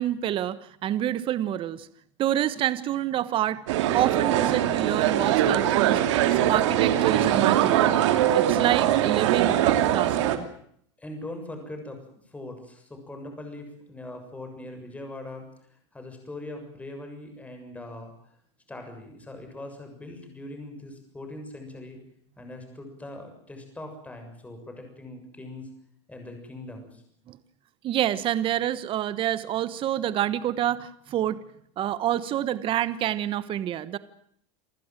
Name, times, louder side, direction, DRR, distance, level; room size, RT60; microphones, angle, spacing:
voice 1, 0.0-1.9 2.2-3.6 3.9-6.0 6.5-8.0 8.3-10.5 27.3-27.4 27.8-31.4 31.8-34.0, right 12 dB, 35° right, 15 dB, 1.3 m, -27 dB
sound 1, 3.7-10.4, right 11 dB, 75° right, 2.8 m, -22 dB
voice 2, 11.0-15.5 15.9-18.1 18.7-22.0 22.4-25.7 26.1-27.0, left 2 dB, 10° left, 4 dB, 7.0 m, -41 dB
28.0 x 15.0 x 9.2 m, 0.68 s
supercardioid pair, 125°, 15 cm